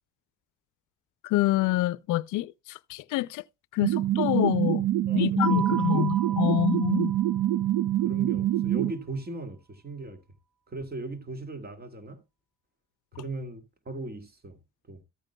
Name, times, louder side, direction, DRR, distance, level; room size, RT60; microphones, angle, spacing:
voice 1, 1.2-3.4 3.7-4.8 5.1-7.1, left 16 dB, 90° left, 0.5 m, -26 dB
sound 1, 3.8-8.9, right 13 dB, 90° right, 0.6 m, -25 dB
voice 2, 5.1-7.0 8.0-10.2 10.7-12.2 13.1-14.6 14.9-15.0, right 2 dB, 30° right, 2.1 m, -38 dB
Keyboard (musical), 5.4-8.0, right 7 dB, 5° left, 1.2 m, -36 dB
14.0 x 9.0 x 2.2 m
cardioid pair, 90°, 30 cm